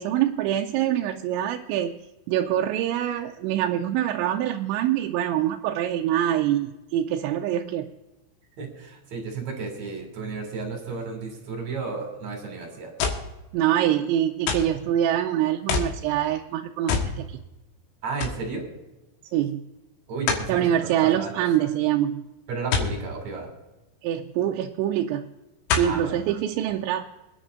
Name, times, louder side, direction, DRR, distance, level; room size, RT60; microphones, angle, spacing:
voice 1, 0.0-2.0 2.3-7.9 13.5-17.4 19.3-19.6 20.5-22.3 24.0-25.3 25.8-27.1, right 11 dB, 80° right, 3 dB, 2.8 m, -25 dB
voice 2, 8.6-12.9 18.0-18.7 20.1-20.5 20.8-21.4 22.5-23.5 25.8-26.1, right 4 dB, 45° right, 2 dB, 3.1 m, -33 dB
sound 1, 13.0-13.3 14.5-14.8 15.7-16.0 16.9-17.2 17.6-17.7 18.2-18.4 20.3-20.5 22.7-23.0 24.4-24.5 25.7-26.0 26.7-26.8, left 6 dB, 80° left, 3.9 m, -25 dB
26.0 x 9.9 x 2.6 m, 1.0 s
omnidirectional pair, 5.5 m